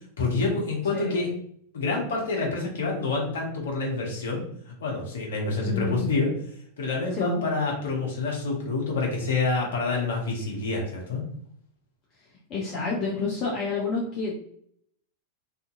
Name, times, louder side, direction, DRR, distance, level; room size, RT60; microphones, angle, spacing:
voice 1, 0.2-1.3 1.7-4.4 4.8-6.3 6.8-11.2, left 3 dB, 60° left, -1 dB, 0.9 m, -27 dB
voice 2, 0.9-1.3 5.6-6.1 7.1-7.4 12.5-14.3, left 4 dB, 35° left, -4 dB, 0.6 m, -29 dB
2.6 x 2.4 x 2.6 m, 0.66 s
figure-of-eight pair, 90°, 0 cm